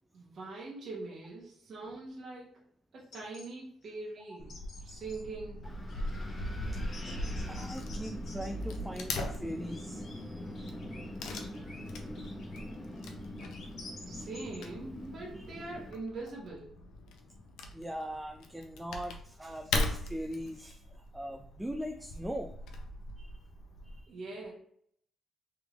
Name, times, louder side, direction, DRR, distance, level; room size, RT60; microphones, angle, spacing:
voice 1, 0.1-2.6 2.9-5.7 14.1-16.7 24.1-24.5, right 3 dB, 55° right, -3 dB, 0.9 m, -43 dB
sound 1, 3.0-3.5 3.8-3.9 4.3-5.2 5.9-8.5 9.1-10.2 10.5-14.6, left 3 dB, 65° left, 0.9 m, -51 dB
Wood / Tearing, 4.4-24.0, left 2 dB, 85° left, 0.5 m, -40 dB
Wind, 5.6-15.9, left 1 dB, 20° left, 0.9 m, -44 dB
voice 2, 6.7-10.7 11.6-11.7 11.9-12.1 13.8-14.3 15.3-15.5 17.7-22.5 23.2-23.4, equal, 10° right, 4 dB, 0.3 m, -41 dB
3.4 x 3.3 x 2.4 m, 0.64 s
cardioid pair, 90°, 0 cm